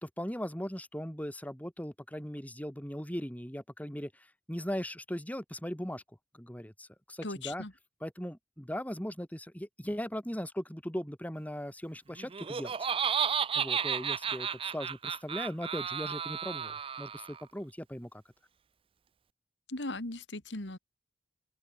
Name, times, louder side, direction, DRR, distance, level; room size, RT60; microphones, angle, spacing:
voice 1, 0.0-6.0 6.3-7.6 8.0-12.7 13.1-13.2 13.5-18.2, equal, 10° left, 4.1 m, -39 dB
voice 2, 7.2-7.7 19.7-20.8, left 2 dB, 80° left, 3.1 m, -38 dB
Laughter, 12.2-17.4, right 7 dB, 30° right, 0.5 m, -33 dB
open air
head